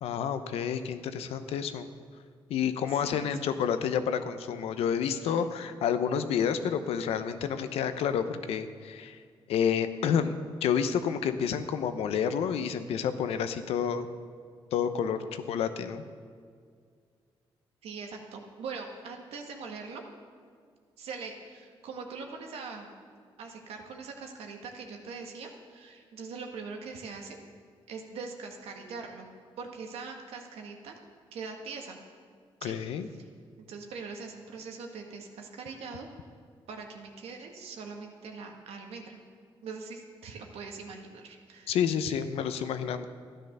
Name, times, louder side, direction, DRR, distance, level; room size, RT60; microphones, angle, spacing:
voice 1, 0.0-1.9 2.5-9.2 9.5-14.1 14.7-16.0 32.6-33.1 41.7-43.1, left 7 dB, 85° left, 10 dB, 0.8 m, -29 dB
voice 2, 2.9-3.3 5.3-5.4 15.2-15.4 17.8-20.0 21.0-22.9 23.4-27.4 27.9-29.3 29.6-31.0 31.3-32.0 32.6-32.8 33.2-33.3 33.7-36.1 36.7-39.2 39.6-41.8, right 4 dB, 85° right, 2 dB, 1.7 m, -42 dB
13.0 x 10.0 x 6.7 m, 2.1 s
cardioid pair, 65°, 10 cm